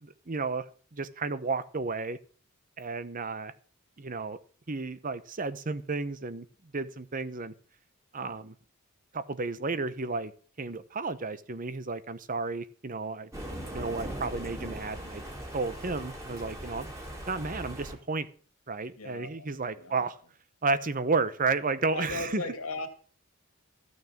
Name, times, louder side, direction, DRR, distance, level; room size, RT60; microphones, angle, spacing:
voice 1, 0.0-2.2 2.8-3.5 4.0-4.4 4.7-6.4 6.7-7.5 8.1-8.5 9.1-10.3 10.6-13.3 13.7-15.2 15.5-16.9 17.3-18.3 18.7-20.2 20.6-22.4, right 4 dB, 40° right, 14 dB, 0.9 m, -32 dB
Thunder, 13.3-17.9, right 1 dB, 15° right, 3.5 m, -40 dB
voice 2, 18.9-19.5 19.7-20.1 21.9-22.9, left 3 dB, 85° left, 7 dB, 2.5 m, -37 dB
14.5 x 6.5 x 7.2 m, 0.41 s
head